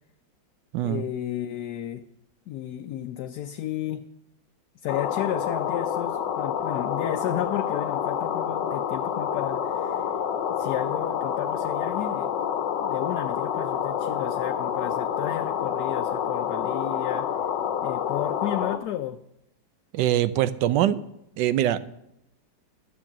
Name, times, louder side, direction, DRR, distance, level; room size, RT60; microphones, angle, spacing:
voice 1, 0.8-2.0 2.5-4.0 4.8-10.1 10.6-12.3 12.8-17.3 17.8-19.2, left 12 dB, 70° left, 7 dB, 1.1 m, -32 dB
sound 1, 4.9-18.8, left 8 dB, 90° left, 1.5 m, -28 dB
voice 2, 19.9-21.0 21.4-21.8, right 12 dB, 80° right, 14 dB, 1.2 m, -23 dB
11.5 x 7.3 x 7.3 m, 0.80 s
omnidirectional pair, 1.9 m